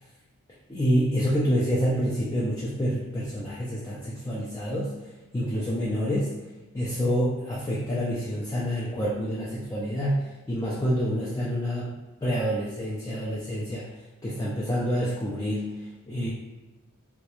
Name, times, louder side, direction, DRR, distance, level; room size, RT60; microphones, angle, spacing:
voice 1, 0.7-4.9 5.3-6.3 6.7-11.9 12.2-13.8 14.2-15.7 16.1-16.3, equal, 15° left, -8 dB, 0.3 m, -27 dB
2.3 x 2.1 x 2.9 m, 1.1 s
head